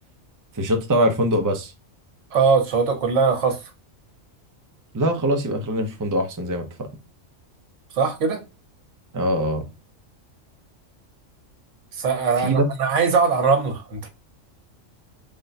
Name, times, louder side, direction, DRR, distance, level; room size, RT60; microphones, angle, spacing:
voice 1, 0.5-1.7 4.9-6.9 9.1-9.6 12.4-12.7, equal, 25° right, 0.5 m, -22 dB
voice 2, 2.3-3.6 7.9-8.4 11.9-14.1, right 5 dB, 70° right, 1.2 m, -21 dB
3.7 x 2.2 x 3.9 m
omnidirectional pair, 1.3 m